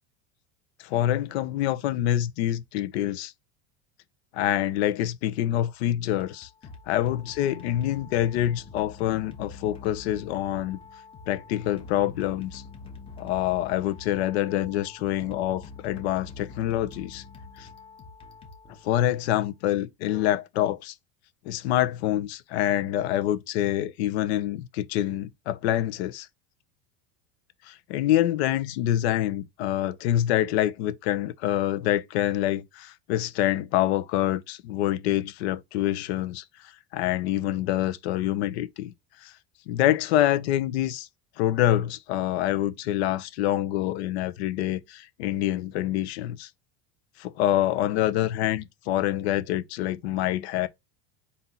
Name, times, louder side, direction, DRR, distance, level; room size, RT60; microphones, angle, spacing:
voice 1, 0.8-3.3 4.3-6.5 6.9-10.8 11.3-12.6 13.2-17.2 17.6-17.7 18.8-20.9 21.5-26.3 27.7-38.9 39.2-39.3 39.7-41.1 41.4-46.5 47.2-50.7, left 13 dB, 80° left, 0.8 m, -26 dB
sound 1, 6.2-19.3, left 4 dB, 15° left, 0.8 m, -45 dB
4.3 x 2.7 x 3.8 m
supercardioid pair, 155°, 32 cm